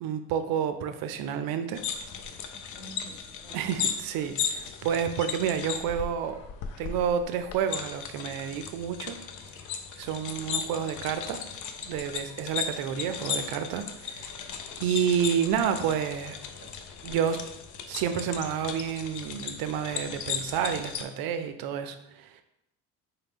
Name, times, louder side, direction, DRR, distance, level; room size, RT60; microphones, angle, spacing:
voice 1, 0.0-1.8 3.5-6.4 6.8-9.2 10.0-11.4 11.8-16.4 17.0-17.4 17.9-22.4, right 8 dB, 65° right, 9 dB, 0.5 m, -30 dB
sound 1, 1.7-21.0, left 7 dB, 55° left, 0.5 m, -36 dB
voice 2, 2.5-3.9, equal, 15° left, 0 dB, 0.8 m, -50 dB
4.1 x 2.2 x 3.5 m, 0.84 s
supercardioid pair, 95°, 38 cm